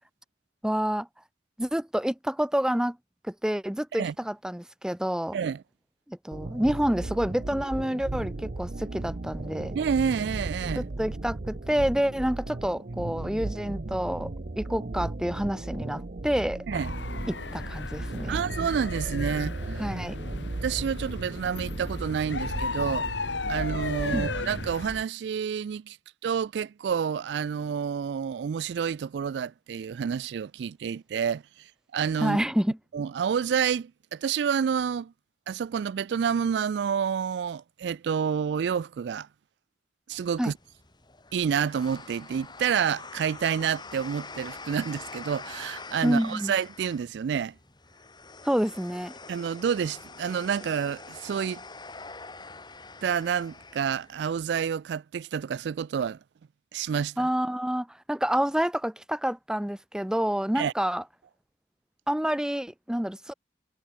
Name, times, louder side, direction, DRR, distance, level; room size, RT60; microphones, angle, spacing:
voice 1, 0.6-1.1 1.6-3.0 3.3-5.4 6.1-9.7 10.8-14.3 14.6-16.6 17.3-18.4 19.8-20.2 24.1-24.3 32.2-32.8 40.4-40.5 46.0-46.5 48.4-49.1 57.2-61.0 62.1-63.3, equal, 5° right, 0.5 m, -28 dB
sound 1, 6.3-24.8, right 2 dB, 50° right, 0.8 m, -36 dB
voice 2, 9.7-10.9 16.7-16.9 18.3-19.5 20.6-23.1 23.5-26.0 26.2-31.4 31.9-32.4 32.9-35.1 35.5-39.3 40.1-40.5 41.3-47.5 49.3-51.6 53.0-56.2 56.7-57.3 60.6-60.7, right 7 dB, 70° right, 0.3 m, -29 dB
sound 2, 16.7-25.0, left 3 dB, 85° left, 2.0 m, -35 dB
sound 3, 40.1-54.4, left 4 dB, 25° left, 4.1 m, -45 dB
head